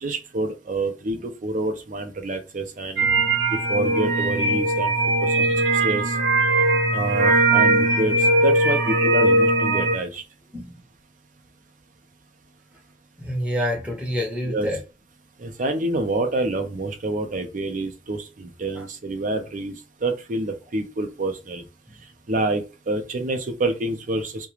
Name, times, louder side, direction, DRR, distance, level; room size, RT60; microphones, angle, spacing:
voice 1, 0.0-3.1 3.5-4.9 5.2-5.5 5.8-6.2 6.9-10.2 14.4-14.7 15.4-19.7 20.0-21.6 22.3-24.5, right 2 dB, 45° right, 0.5 m, -27 dB
sound 1, 3.0-10.0, right 2 dB, 90° right, 0.6 m, -20 dB
voice 2, 3.1-3.4 5.5-5.6 10.5-10.8 13.2-14.8 18.7-18.9, equal, 5° right, 0.7 m, -28 dB
2.4 x 2.2 x 3.0 m
head